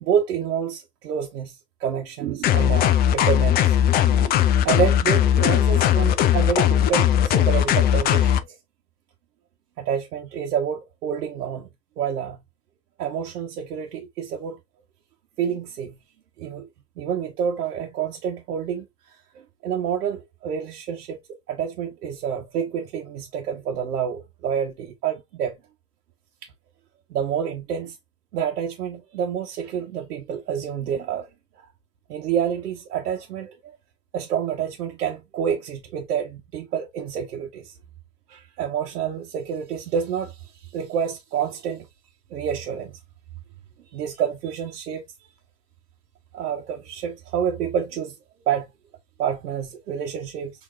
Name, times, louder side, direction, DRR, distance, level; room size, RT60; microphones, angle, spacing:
voice 1, 0.0-1.5 1.8-8.6 9.8-11.7 12.0-12.4 13.0-14.6 15.4-16.0 16.4-16.7 17.0-18.9 19.6-21.2 21.5-25.6 27.1-28.0 28.3-31.3 32.1-33.6 34.1-37.7 38.3-40.4 40.7-41.9 42.3-42.9 43.9-45.0 46.3-48.1 48.5-48.7 49.2-50.5, right 8 dB, 70° right, 1.1 m, -28 dB
sound 1, 2.4-8.4, left 10 dB, 20° left, 0.4 m, -19 dB
6.4 x 2.9 x 2.5 m
hypercardioid pair, 90°, 48 cm